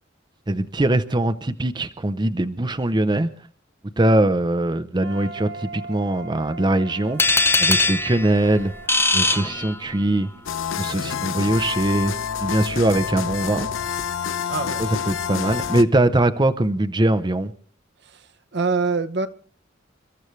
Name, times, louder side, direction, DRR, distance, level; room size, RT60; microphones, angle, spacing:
voice 1, 0.5-3.3 4.0-7.2 7.6-8.7 9.1-10.3 10.8-13.7 15.1-17.5, right 1 dB, 25° right, 0.7 m, -21 dB
sound 1, 5.0-10.9, right 3 dB, 75° right, 1.7 m, -40 dB
sound 2, 7.2-10.2, left 3 dB, 10° left, 0.7 m, -21 dB
sound 3, 10.5-15.8, left 7 dB, 80° left, 0.8 m, -28 dB
voice 2, 14.5-14.9 18.0-19.3, right 4 dB, 60° right, 1.0 m, -25 dB
29.5 x 14.0 x 3.2 m
head